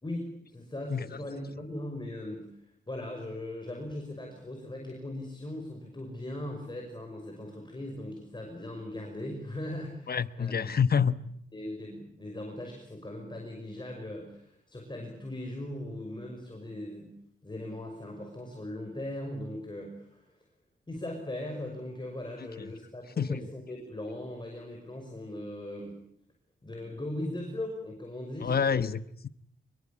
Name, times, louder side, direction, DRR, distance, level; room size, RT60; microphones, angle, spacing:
voice 1, 0.0-2.5 2.9-10.8 11.5-17.1 17.4-20.3 20.9-26.0 26.6-28.8, left 1 dB, 20° left, 6.0 m, -39 dB
voice 2, 10.1-11.2 22.6-22.7 23.2-23.4 28.4-29.3, left 6 dB, 50° left, 1.1 m, -27 dB
24.5 x 22.0 x 8.7 m
cardioid pair, 75°, 21 cm